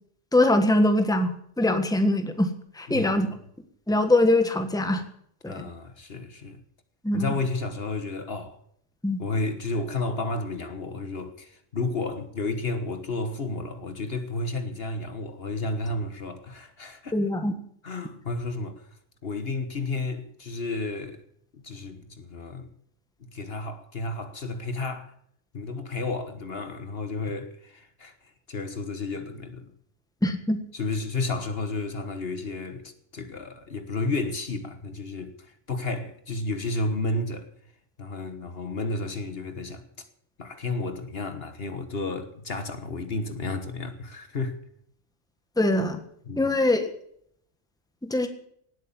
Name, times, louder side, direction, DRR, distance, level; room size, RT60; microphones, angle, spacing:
voice 1, 0.3-3.3 3.9-5.0 5.4-5.7 7.0-7.3 9.0-9.2 17.1-17.5 30.2-30.6 45.6-46.0 46.4-46.9 48.0-48.3, left 1 dB, 5° left, 1.5 m, -23 dB
voice 2, 2.9-3.3 5.4-6.6 7.1-8.6 9.2-17.2 17.8-19.0 19.2-21.2 21.5-22.7 23.2-25.1 25.5-28.1 28.5-29.7 30.7-37.5 38.0-39.8 40.4-44.6 46.3-46.5, left 3 dB, 55° left, 1.6 m, -32 dB
18.0 x 8.5 x 7.2 m
omnidirectional pair, 1.3 m